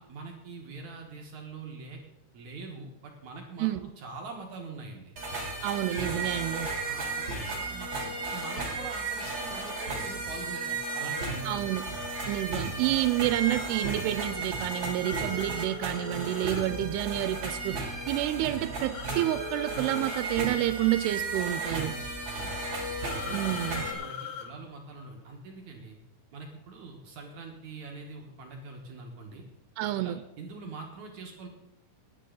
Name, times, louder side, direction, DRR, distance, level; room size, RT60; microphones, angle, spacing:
voice 1, 0.0-2.0 2.3-3.7 4.0-5.1 6.8-11.8 22.2-26.0 26.3-29.5 29.9-31.5, right 3 dB, 60° right, 1 dB, 2.3 m, -44 dB
sound 1, 5.2-23.9, right 3 dB, 30° right, 3.3 m, -34 dB
voice 2, 5.6-6.7 11.5-11.8 12.3-17.8 18.1-22.0 23.3-23.8 29.8-30.2, right 15 dB, 90° right, 11 dB, 2.6 m, -29 dB
sound 2, 13.5-13.7 15.0-16.7 18.9-20.3 23.0-24.5, left 6 dB, 85° left, 2.9 m, -41 dB
18.5 x 10.0 x 3.9 m, 0.92 s
omnidirectional pair, 4.6 m